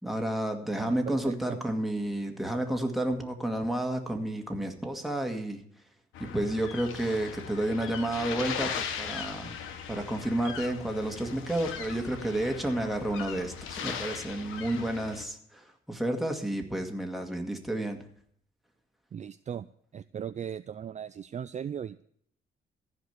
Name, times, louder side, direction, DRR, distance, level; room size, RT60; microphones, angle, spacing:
voice 1, 0.0-5.6 6.2-9.6 9.9-18.0, right 1 dB, ahead, 3 dB, 2.2 m, -31 dB
voice 2, 0.8-1.6 19.1-19.7 19.9-22.0, right 8 dB, 35° right, 13 dB, 0.4 m, -38 dB
sound 1, 6.1-15.2, left 7 dB, 85° left, 1.5 m, -39 dB
14.5 x 5.2 x 9.6 m, 0.64 s
cardioid pair, 90°, 20 cm